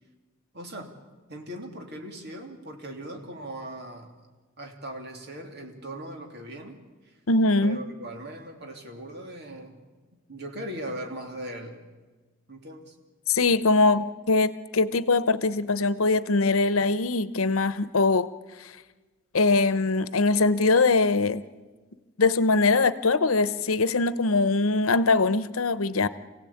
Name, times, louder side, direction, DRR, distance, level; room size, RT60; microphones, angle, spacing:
voice 1, 0.5-0.9 1.3-4.1 4.6-6.8 7.6-9.8 10.3-11.8 12.5-12.9, right 1 dB, 50° right, 3 dB, 3.0 m, -39 dB
voice 2, 7.3-7.8 13.3-18.3 18.6-18.7 19.3-21.4 22.2-26.1, left 3 dB, 85° left, 15 dB, 0.9 m, -22 dB
27.0 x 17.0 x 8.7 m, 1.3 s
head